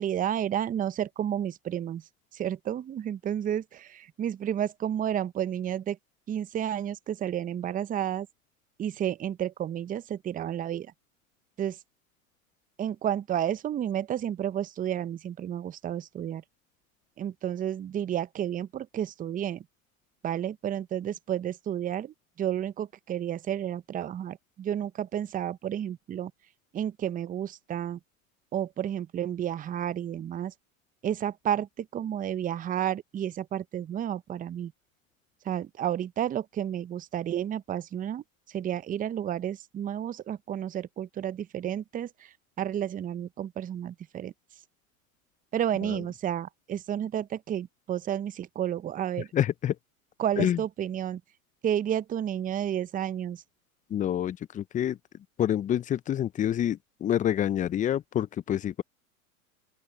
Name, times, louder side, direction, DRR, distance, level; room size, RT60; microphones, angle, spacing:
voice 1, 0.0-2.0 2.3-6.0 6.3-8.3 8.8-10.9 11.6-11.8 12.8-16.4 17.2-19.6 20.2-26.3 26.7-28.0 28.5-30.5 31.0-34.7 35.4-44.3 45.5-49.3 50.2-51.2 51.6-53.4, right 10 dB, 20° right, 0.8 m, -31 dB
voice 2, 49.3-49.8 50.4-50.6 53.9-55.0 55.4-58.8, left 10 dB, 20° left, 0.6 m, -27 dB
open air
hypercardioid pair, 100°, 43 cm